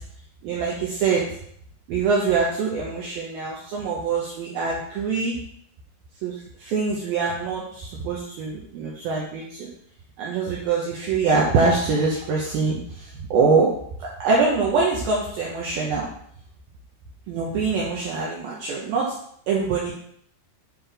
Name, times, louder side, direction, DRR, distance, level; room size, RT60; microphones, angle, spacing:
voice 1, 0.4-1.2 1.9-5.4 6.2-9.7 10.2-13.7 14.0-16.1 17.3-19.1 19.5-19.9, right 4 dB, 75° right, -4 dB, 2.2 m, -24 dB
9.1 x 3.8 x 3.4 m, 0.67 s
omnidirectional pair, 5.4 m